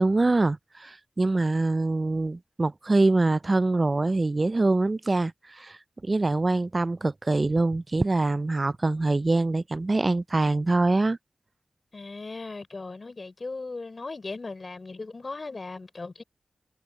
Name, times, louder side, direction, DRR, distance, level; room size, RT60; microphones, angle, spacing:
voice 1, 0.0-11.2, right 2 dB, 45° right, 0.4 m, -24 dB
voice 2, 11.9-16.2, left 3 dB, 55° left, 3.9 m, -37 dB
cardioid pair, 45°, 0 cm